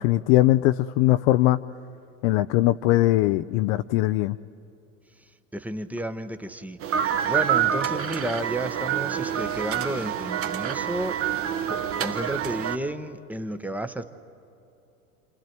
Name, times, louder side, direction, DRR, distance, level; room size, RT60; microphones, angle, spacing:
voice 1, 0.0-1.6 2.2-4.4, left 16 dB, 45° left, 10 dB, 0.6 m, -20 dB
voice 2, 5.5-6.8 7.3-11.3 11.7-14.0, right 1 dB, 5° right, 10 dB, 0.9 m, -32 dB
sound 1, 6.8-12.8, right 9 dB, 30° right, 1.2 m, -27 dB
29.0 x 27.5 x 4.5 m, 2.7 s
hypercardioid pair, 95°, 44 cm